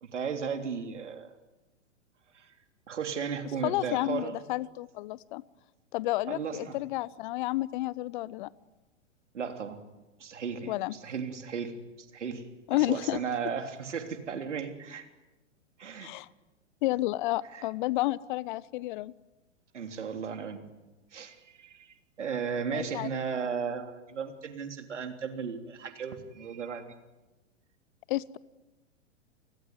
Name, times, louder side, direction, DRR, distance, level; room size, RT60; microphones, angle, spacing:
voice 1, 0.0-1.3 2.3-2.5 2.9-4.4 6.3-6.8 9.3-9.8 10.2-12.4 12.7-15.1 15.8-16.1 17.5-17.6 19.7-20.6 21.1-26.9, right 6 dB, 70° right, 7 dB, 3.5 m, -35 dB
voice 2, 3.6-5.4 5.9-8.5 10.7-10.9 12.7-13.2 16.0-16.3 16.8-19.1 22.7-23.1 28.1-28.4, left 18 dB, 40° left, 22 dB, 0.9 m, -31 dB
29.0 x 21.0 x 9.5 m, 1.1 s
figure-of-eight pair, 110°, 37 cm